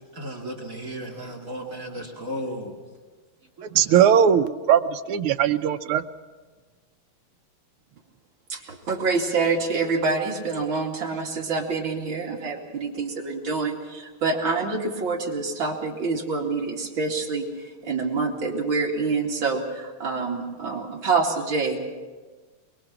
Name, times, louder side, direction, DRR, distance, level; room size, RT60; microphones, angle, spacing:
voice 1, 0.1-2.7 3.6-3.7, equal, 40° right, 2 dB, 2.5 m, -34 dB
voice 2, 3.7-6.0, right 8 dB, 85° right, 10 dB, 1.7 m, -19 dB
voice 3, 8.5-21.9, right 4 dB, 65° right, -1 dB, 3.4 m, -26 dB
23.0 x 23.0 x 5.9 m, 1.3 s
omnidirectional pair, 2.4 m